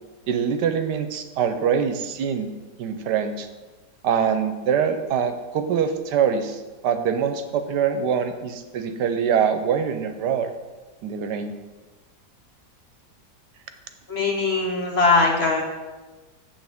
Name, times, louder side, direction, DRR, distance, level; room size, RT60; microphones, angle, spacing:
voice 1, 0.3-2.5 2.8-3.5 4.0-10.5 11.0-11.6, right 7 dB, 80° right, 8 dB, 1.3 m, -24 dB
voice 2, 14.1-15.6, left 3 dB, 45° left, 1 dB, 0.9 m, -20 dB
8.9 x 7.2 x 3.5 m, 1.2 s
omnidirectional pair, 1.9 m